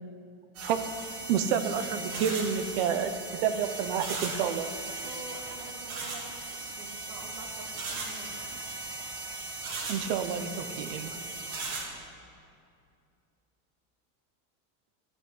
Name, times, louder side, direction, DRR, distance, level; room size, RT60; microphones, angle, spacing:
sound 1, 0.5-11.8, right 3 dB, 55° right, 3.0 m, -38 dB
voice 1, 0.6-1.0 1.3-4.7 9.9-11.2, right 8 dB, 40° right, 10 dB, 0.6 m, -29 dB
voice 2, 5.0-8.6, right 3 dB, 85° right, 2 dB, 2.4 m, -47 dB
12.5 x 7.2 x 10.0 m, 2.5 s
supercardioid pair, 180°, 48 cm